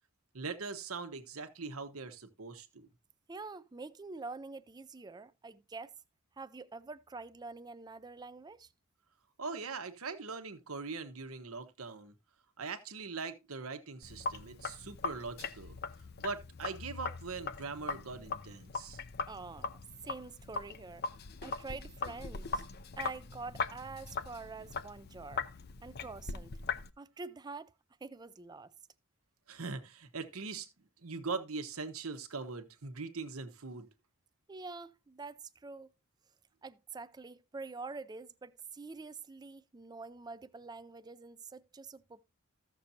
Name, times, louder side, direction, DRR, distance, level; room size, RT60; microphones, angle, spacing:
voice 1, 0.3-2.9 9.4-12.1 12.6-15.8 16.2-19.0 29.5-30.7 31.0-33.9, right 4 dB, 80° right, 1.2 m, -41 dB
voice 2, 3.3-5.9 6.4-8.7 19.3-21.0 21.4-22.6 23.0-25.4 25.8-26.5 27.0-27.7 28.0-28.7 34.5-35.9 36.6-42.2, right 4 dB, 20° right, 0.4 m, -46 dB
Sink (filling or washing), 14.0-26.9, left 5 dB, 50° left, 0.6 m, -40 dB
14.5 x 6.7 x 2.7 m
head